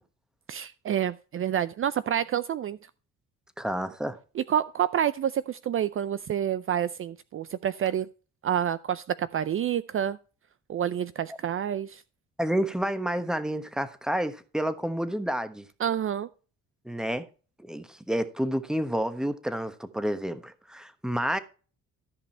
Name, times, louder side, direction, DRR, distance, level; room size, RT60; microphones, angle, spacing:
voice 1, 0.5-2.8 4.4-8.1 8.4-10.2 10.7-12.0 15.8-16.3, right 10 dB, 45° right, 0.5 m, -28 dB
voice 2, 3.6-4.2 12.4-15.6 16.8-17.2 17.6-21.4, equal, ahead, 1.1 m, -29 dB
13.5 x 5.4 x 4.3 m
cardioid pair, 90°, 30 cm